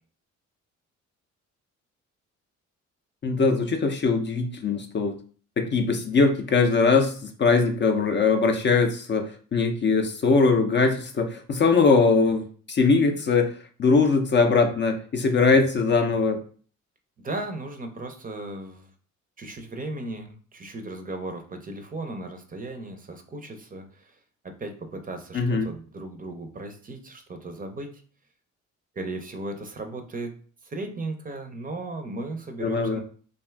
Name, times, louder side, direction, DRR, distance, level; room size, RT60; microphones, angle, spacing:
voice 1, 3.2-5.2 5.6-13.5 13.8-16.4 25.3-25.7 32.6-33.0, left 4 dB, 40° left, 5 dB, 0.5 m, -21 dB
voice 2, 17.2-18.9 19.4-24.2 24.4-27.9 29.0-30.3 30.6-33.0, right 2 dB, 30° right, 5 dB, 0.5 m, -36 dB
2.5 x 2.3 x 3.2 m, 0.42 s
cardioid pair, 90°, 30 cm